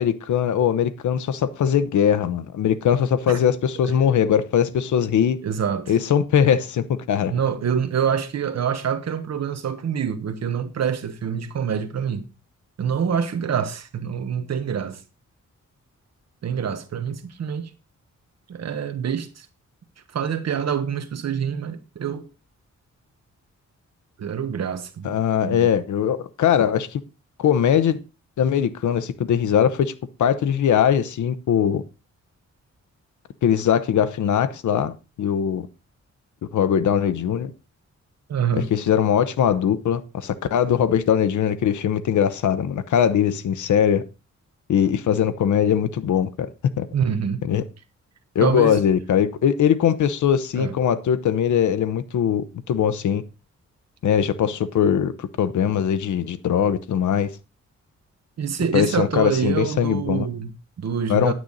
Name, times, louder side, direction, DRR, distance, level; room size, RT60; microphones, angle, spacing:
voice 1, 0.0-5.4 5.9-7.3 25.0-27.0 27.4-28.0 28.4-29.9 30.2-31.8 33.4-34.9 35.2-35.7 36.5-37.5 38.7-44.0 44.7-46.5 46.8-46.9 47.5-47.6 48.3-53.2 54.0-57.3 58.7-60.3 61.1-61.3, left 8 dB, 85° left, 0.8 m, -21 dB
voice 2, 5.4-6.0 7.3-12.2 12.8-15.0 16.4-17.7 18.5-19.5 20.1-22.3 24.2-25.1 25.4-25.7 38.3-38.7 46.9-47.5 48.4-48.8 50.5-50.7 58.4-61.3, right 7 dB, 60° right, 1.2 m, -26 dB
10.0 x 9.3 x 4.0 m
wide cardioid pair, 180°, 29 cm